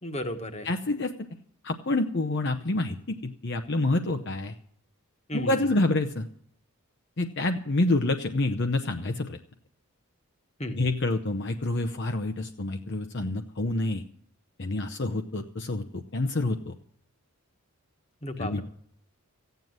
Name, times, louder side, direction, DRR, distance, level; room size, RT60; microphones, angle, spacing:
voice 1, 0.0-0.7 5.3-5.7 10.6-10.8 18.2-18.6, left 1 dB, 30° left, 7 dB, 1.4 m, -33 dB
voice 2, 0.6-1.1 1.6-4.5 5.3-6.3 7.2-9.4 10.8-14.0 14.6-16.7 18.4-18.6, left 2 dB, 50° left, 6 dB, 0.8 m, -27 dB
15.0 x 9.2 x 7.8 m, 0.64 s
head